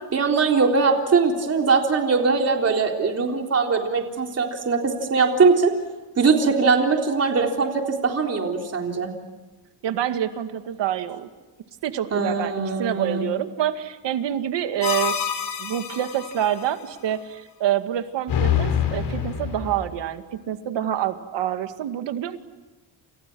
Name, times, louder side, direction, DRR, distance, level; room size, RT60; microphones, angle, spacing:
voice 1, 0.1-5.7 6.2-9.1 12.1-13.3, right 4 dB, 35° right, 2 dB, 3.8 m, -21 dB
voice 2, 9.8-11.3 11.8-12.5 12.8-15.3 15.6-22.4, right 11 dB, 75° right, 8 dB, 2.1 m, -27 dB
sound 1, 14.8-16.5 18.3-19.9, left 9 dB, 65° left, 5.0 m, -26 dB
29.5 x 29.0 x 6.2 m, 1.2 s
cardioid pair, 145°, 43 cm